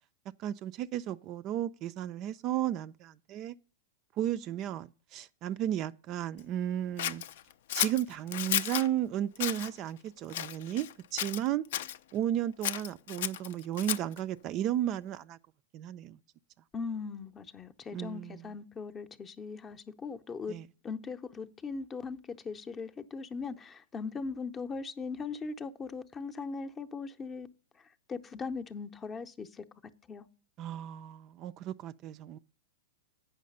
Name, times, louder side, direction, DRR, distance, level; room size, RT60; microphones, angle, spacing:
voice 1, 0.4-3.6 4.2-7.2 7.7-11.6 12.1-15.4 15.7-16.2 17.9-18.4 20.5-20.7 30.6-32.4, right 11 dB, 35° right, 0.3 m, -34 dB
Scissors, 7.0-8.9 9.3-9.7 10.3-10.9 11.2-12.0 12.6-14.2, left 11 dB, 65° left, 0.4 m, -33 dB
voice 2, 16.7-20.6 20.8-27.5 27.7-30.3, left 4 dB, 20° left, 0.6 m, -39 dB
8.4 x 5.7 x 5.3 m
hypercardioid pair, 130°, 0 cm